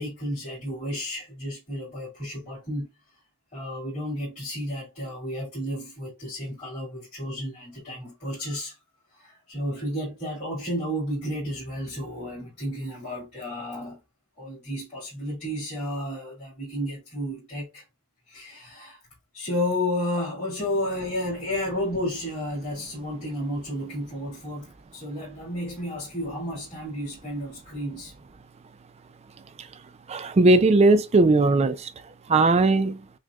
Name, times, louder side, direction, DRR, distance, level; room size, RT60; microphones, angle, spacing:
voice 1, 0.0-2.9 3.5-8.8 9.1-14.0 14.4-17.8 18.3-19.0 19.3-28.1, left 1 dB, 30° left, 2.5 m, -32 dB
voice 2, 30.1-31.9 32.3-33.0, right 2 dB, 30° right, 0.4 m, -19 dB
6.2 x 2.2 x 2.3 m
head